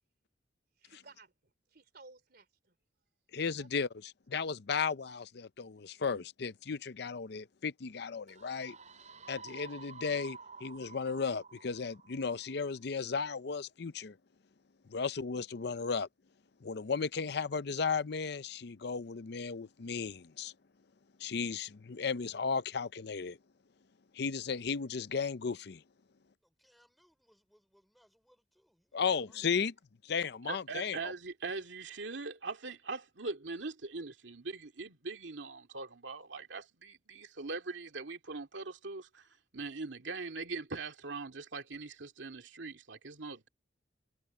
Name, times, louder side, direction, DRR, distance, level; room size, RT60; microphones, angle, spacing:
voice 1, 0.8-2.7 3.6-3.7, right 3 dB, 55° right, 3.6 m, -57 dB
voice 2, 3.3-8.8 9.3-14.2 14.9-16.1 16.6-20.5 21.2-23.4 24.1-25.8 28.9-29.7 30.0-31.1, left 5 dB, 60° left, 0.6 m, -35 dB
sound 1, 8.3-12.8, right 5 dB, 40° right, 7.7 m, -51 dB
voice 3, 26.4-29.4, equal, ahead, 4.5 m, -68 dB
voice 4, 30.4-43.5, right 3 dB, 80° right, 2.2 m, -41 dB
head